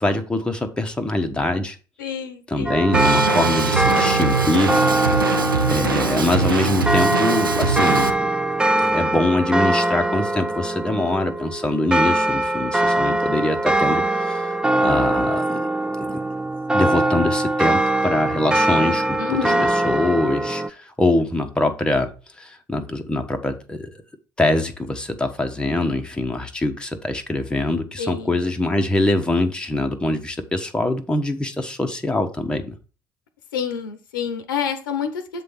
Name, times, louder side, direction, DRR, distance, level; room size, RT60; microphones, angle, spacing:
voice 1, 0.0-1.8 2.5-5.3 5.7-8.3 8.7-15.7 16.0-16.2 16.7-19.5 19.8-22.1 22.4-23.9 24.4-32.8, left 2 dB, 10° left, 1.0 m, -23 dB
voice 2, 2.0-2.9 19.2-19.6 28.0-28.4 33.5-35.4, left 7 dB, 75° left, 0.9 m, -28 dB
sound 1, 2.7-20.7, right 1 dB, 10° right, 0.4 m, -22 dB
Drum kit, 2.9-8.1, right 5 dB, 90° right, 0.6 m, -23 dB
7.6 x 3.3 x 5.6 m
figure-of-eight pair, 60°, 11 cm